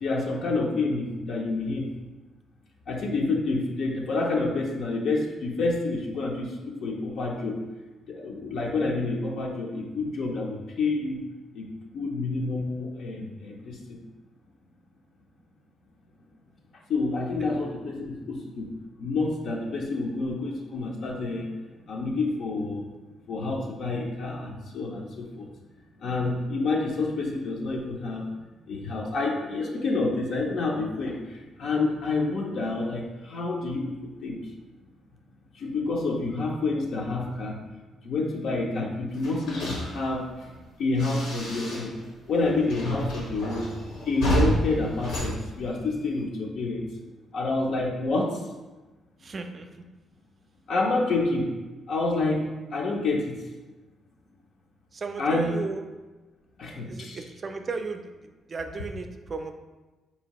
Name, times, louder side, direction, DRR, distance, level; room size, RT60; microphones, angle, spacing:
voice 1, 0.0-1.9 2.9-7.6 8.1-11.2 11.5-11.7 11.9-14.0 16.9-18.7 19.0-21.5 21.9-22.9 23.3-25.5 26.0-28.2 28.7-34.4 35.6-37.6 38.0-40.3 40.8-41.9 42.3-43.6 44.1-46.9 47.3-48.4 50.7-51.5 51.9-52.4 52.7-53.3 55.2-55.5 56.6-57.2, left 3 dB, 65° left, -1 dB, 0.5 m, -28 dB
sound 1, 39.1-42.1 42.3-46.2, right 1 dB, 85° left, 0.9 m, -31 dB
voice 2, 49.2-49.8 54.9-55.9 56.8-59.5, right 4 dB, 40° right, 6 dB, 0.4 m, -35 dB
4.2 x 2.7 x 2.9 m, 1.2 s
cardioid pair, 95°, 0 cm